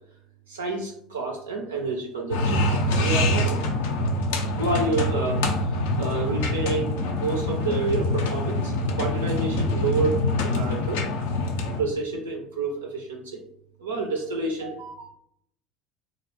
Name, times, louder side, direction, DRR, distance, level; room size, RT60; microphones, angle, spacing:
voice 1, 0.5-3.7 4.6-11.0 11.8-13.4 13.8-15.1, right 3 dB, 85° right, 0 dB, 0.3 m, -29 dB
sound 1, 2.3-11.8, left 2 dB, 70° left, 0.4 m, -25 dB
2.3 x 2.0 x 3.0 m, 0.70 s
hypercardioid pair, 70°, 0 cm